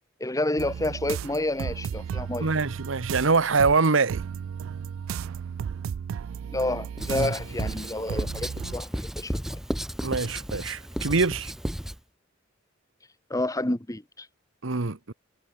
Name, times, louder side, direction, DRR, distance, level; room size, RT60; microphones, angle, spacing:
voice 1, 0.2-2.5 6.5-9.6 13.3-14.3, left 1 dB, 15° left, 1.5 m, -29 dB
sound 1, 0.6-8.7, right 7 dB, 85° right, 0.3 m, -34 dB
voice 2, 2.4-4.2 7.1-7.3 10.0-11.5 14.6-15.1, right 4 dB, 70° right, 1.1 m, -24 dB
Writing, 7.0-12.0, equal, ahead, 0.3 m, -33 dB
head